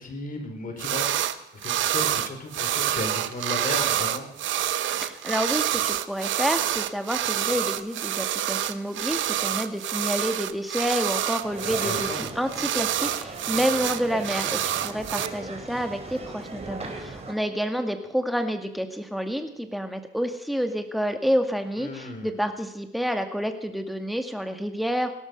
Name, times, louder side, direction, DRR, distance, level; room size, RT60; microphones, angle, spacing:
voice 1, 0.0-1.4 1.6-4.3 11.8-12.3 21.8-22.3, left 2 dB, 45° left, 4 dB, 4.6 m, -35 dB
sound 1, 0.8-1.4 1.6-15.3, right 12 dB, 75° right, 0.9 m, -27 dB
voice 2, 5.0-25.1, equal, ahead, 6 dB, 2.1 m, -29 dB
sound 2, 11.4-17.3, right 3 dB, 30° right, 4.1 m, -38 dB
17.0 x 13.0 x 5.4 m, 0.82 s
cardioid pair, 90°, 20 cm